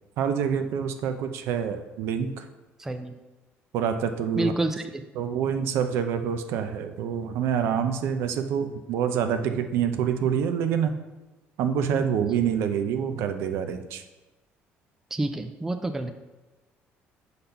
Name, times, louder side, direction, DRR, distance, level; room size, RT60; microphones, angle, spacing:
voice 1, 0.2-2.5 3.7-4.5 5.2-10.9 11.6-14.0, right 8 dB, 70° right, 8 dB, 0.6 m, -26 dB
voice 2, 2.8-3.1 4.3-5.0 15.1-16.1, right 2 dB, 10° right, 7 dB, 0.3 m, -28 dB
6.7 x 4.1 x 5.6 m, 1.1 s
cardioid pair, 160°, 4 cm